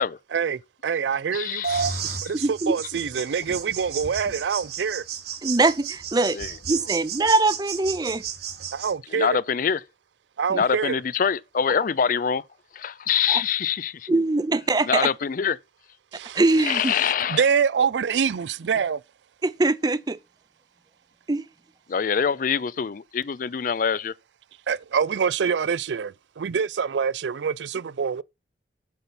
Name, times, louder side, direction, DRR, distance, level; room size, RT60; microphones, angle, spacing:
voice 1, 0.3-1.6 2.2-5.0 8.7-9.4 10.4-11.0 16.1-16.4 17.3-19.0 24.7-28.2, right 6 dB, 85° right, 0.4 m, -25 dB
voice 2, 1.3-2.2 6.3-6.5 9.1-9.8 10.5-12.4 12.7-14.2 14.9-15.6 16.6-17.5 21.9-24.1, left 7 dB, 50° left, 0.4 m, -25 dB
sound 1, 1.6-8.9, right 6 dB, 60° right, 1.7 m, -33 dB
voice 3, 2.4-2.8 5.4-6.4 6.7-8.2 10.5-10.6 13.3-13.4 14.1-15.1 16.3-16.9 19.4-20.2 21.3-21.5, right 2 dB, 25° right, 0.5 m, -22 dB
8.0 x 5.8 x 6.9 m
head